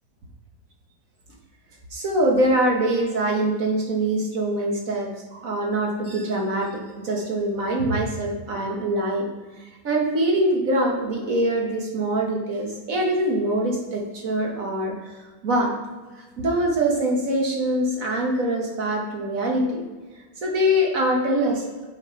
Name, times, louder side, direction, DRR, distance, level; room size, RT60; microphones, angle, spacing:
voice 1, 1.9-6.7 7.0-9.2 9.6-14.9 15.4-15.7 16.4-19.9 20.4-21.6, right 1 dB, 50° right, -1 dB, 1.4 m, -23 dB
7.3 x 5.0 x 4.5 m, 1.3 s
omnidirectional pair, 1.9 m